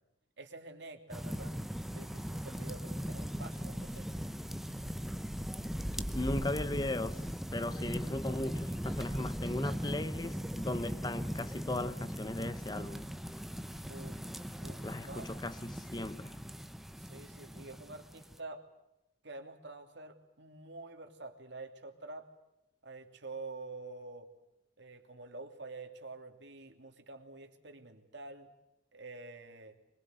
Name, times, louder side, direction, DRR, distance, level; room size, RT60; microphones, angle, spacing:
voice 1, 0.4-1.6 1.9-4.1 13.9-14.2 14.6-15.3 17.0-18.6 19.2-22.3 22.8-24.3 24.8-28.5 28.9-29.8, right 3 dB, 70° right, 2.9 m, -48 dB
sound 1, 1.1-18.4, equal, ahead, 1.0 m, -39 dB
voice 2, 5.9-13.0 14.8-16.3, left 2 dB, 25° left, 0.8 m, -37 dB
24.5 x 22.0 x 8.1 m
head